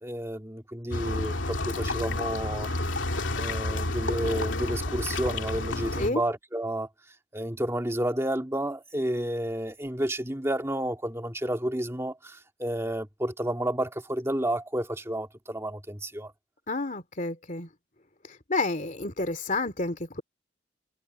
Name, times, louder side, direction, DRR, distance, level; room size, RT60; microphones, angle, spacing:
voice 1, 0.0-2.7 3.4-6.9 7.3-16.3, right 1 dB, 15° right, 2.5 m, -31 dB
sound 1, 0.9-6.1, left 2 dB, 80° left, 2.7 m, -30 dB
voice 2, 16.7-17.7 18.5-20.2, left 2 dB, 40° left, 2.9 m, -29 dB
head